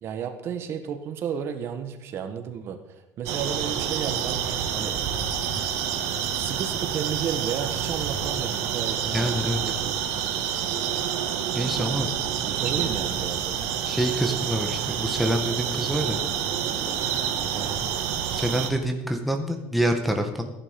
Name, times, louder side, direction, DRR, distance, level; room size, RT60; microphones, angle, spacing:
voice 1, 0.0-4.5 4.7-4.9 5.6-5.7 6.3-10.1 12.4-13.6 17.5-17.9, right 7 dB, 45° right, 7 dB, 1.5 m, -33 dB
sound 1, 3.3-18.7, right 8 dB, 80° right, 2.3 m, -28 dB
voice 2, 9.1-9.8 11.5-12.1 13.8-16.2 18.3-20.5, right 1 dB, ahead, 2 dB, 1.7 m, -26 dB
16.5 x 11.0 x 5.3 m, 0.95 s
cardioid pair, 140°, 6 cm